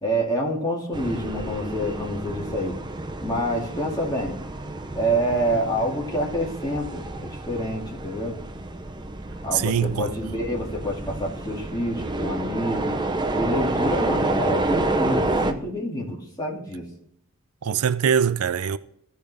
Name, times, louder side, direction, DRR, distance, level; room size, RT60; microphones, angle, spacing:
voice 1, 0.0-2.8 3.2-4.4 4.9-8.4 9.4-12.9 13.3-16.9, equal, 15° left, 2.1 m, -27 dB
sound 1, 0.9-15.5, right 2 dB, 20° right, 0.6 m, -29 dB
voice 2, 9.5-10.1 17.6-18.8, right 7 dB, 85° right, 0.5 m, -22 dB
15.5 x 5.2 x 3.4 m
head